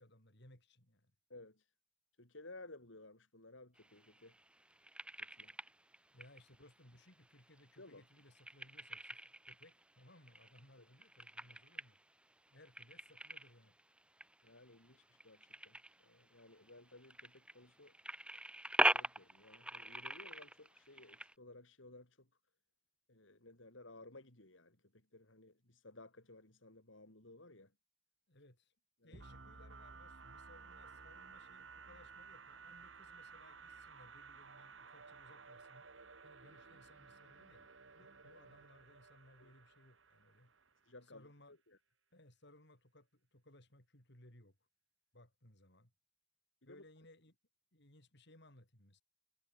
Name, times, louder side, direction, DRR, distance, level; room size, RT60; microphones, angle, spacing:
voice 1, 0.0-1.1 6.1-9.2 9.5-12.0 12.5-13.8 28.3-28.7 29.0-35.9 36.2-37.7 37.9-40.5 41.0-41.6 42.1-44.6 45.1-45.9 46.6-47.4 47.7-49.0, left 1 dB, 65° left, 8.0 m, -63 dB
voice 2, 1.3-1.7 2.2-4.4 5.2-5.5 7.8-8.0 10.8-10.9 14.4-17.9 18.9-22.3 23.1-27.7 29.0-29.2 39.4-39.5 40.8-41.8 46.7-46.8, left 2 dB, 80° left, 4.8 m, -57 dB
sound 1, 3.8-21.3, right 1 dB, 5° right, 1.9 m, -43 dB
sound 2, 29.1-40.9, right 4 dB, 80° right, 2.4 m, -56 dB
head